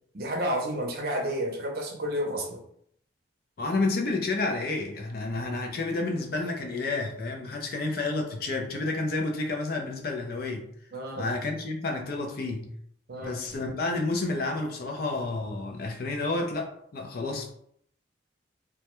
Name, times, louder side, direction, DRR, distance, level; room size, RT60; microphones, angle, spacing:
voice 1, 0.1-2.6 10.9-11.3 13.1-13.4, equal, 55° right, 1 dB, 0.5 m, -31 dB
voice 2, 3.6-10.7 11.2-12.7 13.2-17.5, left 3 dB, 55° left, 3 dB, 0.4 m, -30 dB
2.2 x 2.1 x 2.9 m, 0.68 s
head